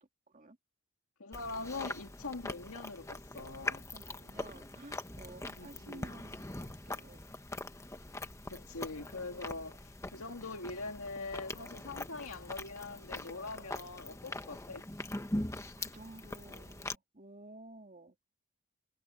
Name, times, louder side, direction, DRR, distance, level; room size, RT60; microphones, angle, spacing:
voice 1, 1.2-3.9 5.5-6.2 8.5-14.9, left 3 dB, 80° left, 2.1 m, -43 dB
Chewing mastication, 1.3-16.9, left 2 dB, 15° left, 1.2 m, -42 dB
voice 2, 3.9-7.3 15.8-18.2, right 2 dB, 35° right, 2.3 m, -53 dB
head